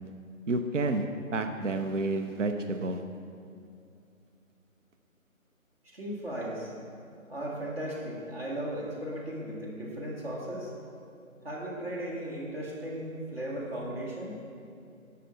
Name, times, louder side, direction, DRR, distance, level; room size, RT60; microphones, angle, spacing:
voice 1, 0.5-1.0 1.3-3.0, right 2 dB, 60° right, 6 dB, 0.7 m, -29 dB
voice 2, 5.9-6.7 7.3-10.7 11.4-14.4, right 1 dB, 45° right, -4 dB, 2.1 m, -36 dB
11.5 x 5.8 x 6.4 m, 2.6 s
figure-of-eight pair, 165°, 42 cm